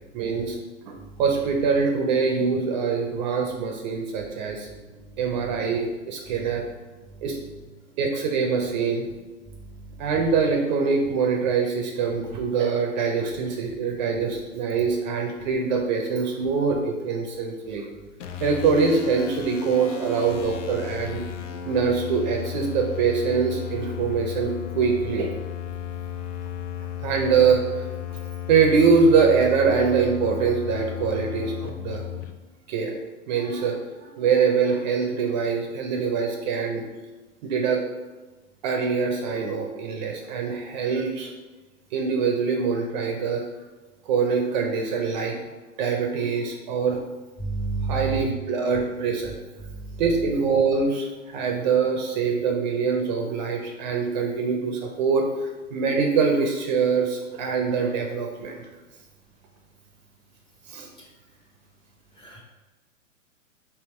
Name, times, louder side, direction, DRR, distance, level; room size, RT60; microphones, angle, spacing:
voice 1, 0.1-0.6 0.9-4.7 5.2-6.6 7.2-7.4 8.0-9.1 10.0-17.8 18.4-21.2 21.7-25.3 27.0-27.8 28.5-32.1 32.7-32.9 33.3-36.8 37.4-37.8 38.6-41.3 41.9-43.4 44.1-45.4 45.8-47.0 47.8-49.3 50.0-58.6 60.7-60.9, right 5 dB, 35° right, 2 dB, 0.5 m, -24 dB
sound 1, 18.2-32.3, left 9 dB, 70° left, 0.6 m, -34 dB
voice 2, 47.4-48.2 62.2-62.4, right 4 dB, 15° left, -2 dB, 0.6 m, -28 dB
3.5 x 2.8 x 4.2 m, 1.2 s
hypercardioid pair, 125°, 39 cm